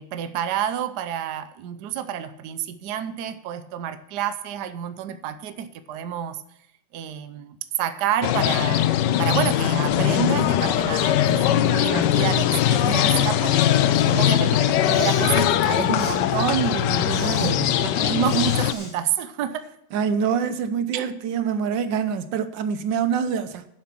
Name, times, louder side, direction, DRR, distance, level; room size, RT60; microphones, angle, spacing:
voice 1, 0.0-6.4 6.9-8.9 9.2-17.1 17.4-19.7 20.9-21.1, right 9 dB, 70° right, 1.3 m, -29 dB
sound 1, 8.2-18.7, left 11 dB, 75° left, 1.2 m, -21 dB
Respiratory sounds, 14.7-15.3 15.9-16.2 17.0-17.5 18.2-18.9, left 2 dB, 35° left, 2.6 m, -37 dB
voice 2, 17.1-17.8 19.9-23.7, right 7 dB, 85° right, 1.5 m, -26 dB
11.0 x 7.6 x 5.9 m
omnidirectional pair, 2.0 m